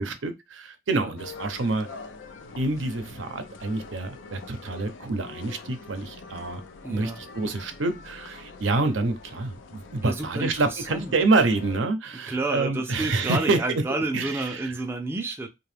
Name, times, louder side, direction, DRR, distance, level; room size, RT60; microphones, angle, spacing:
voice 1, 0.0-1.9 2.6-6.6 6.9-13.6 14.1-14.7, right 3 dB, 90° right, 0.6 m, -27 dB
sound 1, 1.2-11.8, left 4 dB, 85° left, 0.4 m, -45 dB
voice 2, 6.8-7.2 10.0-11.1 12.3-15.5, right 2 dB, 10° right, 0.4 m, -30 dB
2.8 x 2.3 x 3.2 m
head